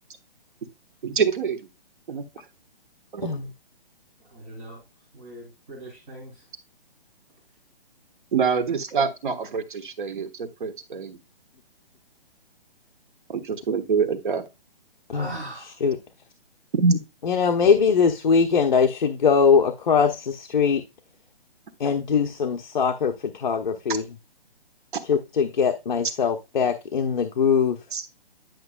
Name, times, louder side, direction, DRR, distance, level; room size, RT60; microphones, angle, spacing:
voice 1, 1.0-1.7 2.1-2.2 3.1-3.3 8.3-11.2 13.3-14.5 16.7-17.0 27.9-28.0, right 5 dB, 55° right, 8 dB, 1.4 m, -25 dB
voice 2, 4.2-4.8 5.1-6.4 15.1-15.9, right 1 dB, 20° right, -5 dB, 2.2 m, -40 dB
voice 3, 17.2-20.8 21.8-24.0 25.1-27.8, left 6 dB, 50° left, 6 dB, 0.8 m, -21 dB
10.5 x 5.9 x 2.3 m, 0.25 s
hypercardioid pair, 170°, 30 cm